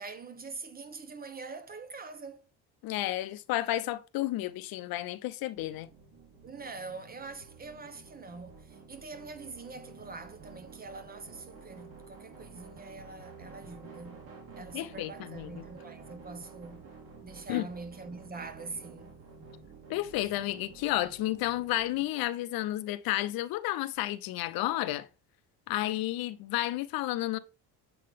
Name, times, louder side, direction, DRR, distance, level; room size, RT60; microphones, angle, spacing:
voice 1, 0.0-2.5 6.4-14.2 14.5-16.8 17.2-19.1, right 4 dB, 25° right, 0.9 m, -44 dB
voice 2, 2.8-5.9 14.7-15.7 17.5-17.7 19.9-25.1 25.7-27.4, left 15 dB, 65° left, 0.6 m, -32 dB
sound 1, 5.5-22.0, right 4 dB, 65° right, 3.1 m, -51 dB
7.7 x 3.7 x 3.5 m
cardioid pair, 105°, 39 cm